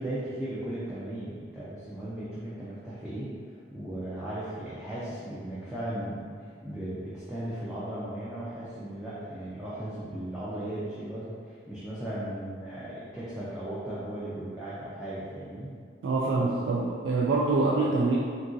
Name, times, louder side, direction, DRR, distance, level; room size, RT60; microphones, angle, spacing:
voice 1, 0.0-3.3 3.7-15.7 16.4-16.5, right 1 dB, 5° right, -11 dB, 0.3 m, -36 dB
voice 2, 16.0-18.2, right 3 dB, 90° right, -4 dB, 0.3 m, -25 dB
2.8 x 2.5 x 2.5 m, 2.1 s
head